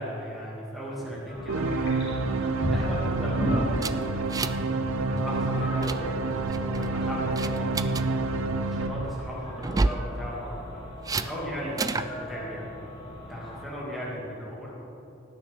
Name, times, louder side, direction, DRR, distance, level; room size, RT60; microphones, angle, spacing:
voice 1, 0.0-1.7 2.2-4.2 5.0-6.3 6.7-8.3 8.7-10.8 11.1-12.7 13.3-14.7, equal, ahead, -7 dB, 2.4 m, -37 dB
sound 1, 1.3-13.6, equal, 50° left, 3.1 m, -37 dB
sound 2, 1.5-9.9, right 3 dB, 80° right, 0.7 m, -28 dB
sound 3, 3.8-4.7 5.0-5.2 5.5-6.0 6.5-6.9 7.4-8.0 9.6-10.1 11.0-11.3 11.8-12.1, right 3 dB, 20° right, 0.3 m, -28 dB
19.0 x 10.0 x 3.6 m, 2.8 s
head